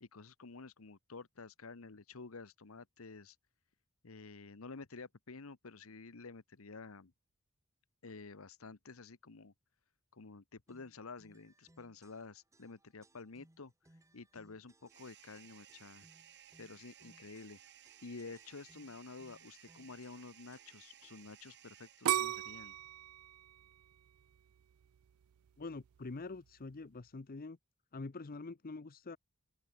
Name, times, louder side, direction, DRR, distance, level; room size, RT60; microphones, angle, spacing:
voice 1, 0.0-3.4 4.0-7.1 8.0-9.5 10.1-16.1 16.6-17.6 18.0-22.8, left 4 dB, 85° left, 1.1 m, -51 dB
sound 1, 10.7-21.5, right 1 dB, 15° right, 1.3 m, -68 dB
sound 2, 14.9-22.6, right 11 dB, 55° right, 1.5 m, -60 dB
sound 3, 22.1-25.0 25.5-26.0, right 12 dB, 90° right, 0.4 m, -36 dB
voice 2, 25.6-27.6 27.9-29.2, left 3 dB, 45° left, 0.7 m, -45 dB
open air
head